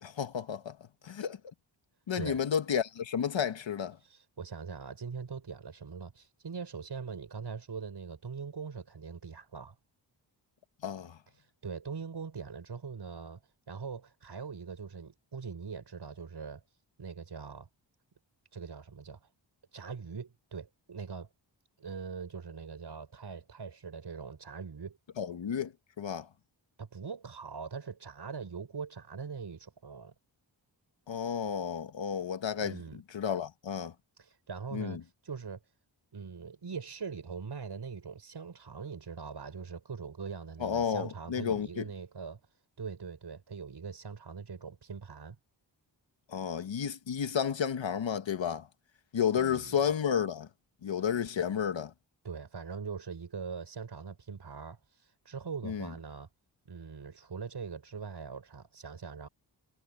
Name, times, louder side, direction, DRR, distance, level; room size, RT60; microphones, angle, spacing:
voice 1, 0.0-0.8 1.0-1.4 2.1-4.0 10.8-11.2 25.2-25.7 26.0-26.3 31.1-33.9 34.7-35.0 40.6-41.9 46.3-48.7 49.1-50.5 50.8-51.9 55.6-55.9, left 8 dB, 75° left, 1.7 m, -32 dB
voice 2, 4.0-9.8 11.4-13.4 13.7-16.6 17.0-17.7 18.5-19.3 19.7-21.3 21.8-25.0 26.8-30.1 32.5-33.0 34.2-35.6 36.1-42.4 42.8-45.4 49.4-49.8 52.2-56.3 56.7-59.3, right 5 dB, 60° right, 6.5 m, -42 dB
wide cardioid pair, 100°, 46 cm